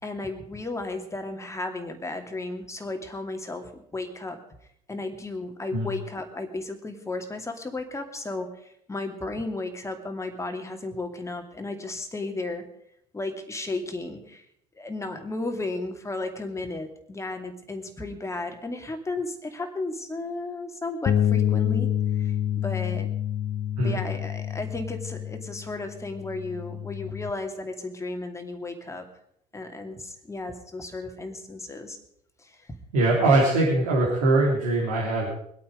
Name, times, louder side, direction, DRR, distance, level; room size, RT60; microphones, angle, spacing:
voice 1, 0.0-4.4 4.9-12.7 13.1-14.5 14.8-21.9 22.2-23.1 23.8-29.1 29.5-32.0 32.4-32.7, left 2 dB, 15° left, 5 dB, 2.5 m, -34 dB
Bass guitar, 21.1-27.3, left 10 dB, 35° left, 0.8 m, -27 dB
voice 2, 32.9-35.3, right 2 dB, 65° right, -3 dB, 3.6 m, -22 dB
23.0 x 8.6 x 5.2 m, 0.71 s
figure-of-eight pair, 70°, 20 cm